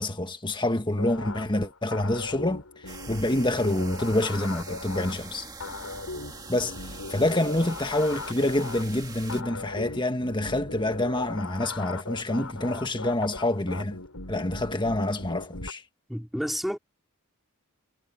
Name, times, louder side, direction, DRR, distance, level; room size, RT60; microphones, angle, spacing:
voice 1, 0.0-5.5 6.5-14.0 14.3-15.8, left 1 dB, 20° left, 1.5 m, -27 dB
sound 1, 1.0-15.7, left 3 dB, 80° left, 5.5 m, -39 dB
sound 2, 2.9-9.4, right 3 dB, 15° right, 2.0 m, -43 dB
voice 2, 16.1-16.8, equal, ahead, 4.2 m, -30 dB
head